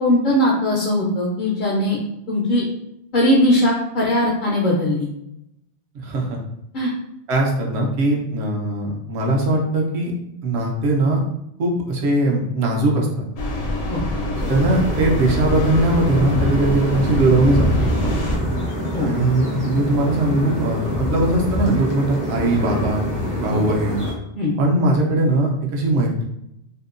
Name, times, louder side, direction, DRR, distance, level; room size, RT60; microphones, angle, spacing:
voice 1, 0.0-2.0 2.3-2.6 3.1-5.1 6.7-6.9 13.9-14.0 18.9-19.1 24.4-24.5, left 1 dB, 55° left, -4 dB, 0.6 m, -19 dB
voice 2, 5.9-6.4 7.3-10.1 10.4-11.2 11.6-13.1 14.5-17.8 19.0-23.1 23.4-24.0 24.6-26.2, right 2 dB, 70° right, -1 dB, 0.9 m, -20 dB
sound 1, 13.4-18.4, left 1 dB, 90° left, 0.9 m, -25 dB
sound 2, 14.3-24.1, equal, 25° right, 0.5 m, -25 dB
2.7 x 2.1 x 2.4 m, 0.81 s
omnidirectional pair, 1.2 m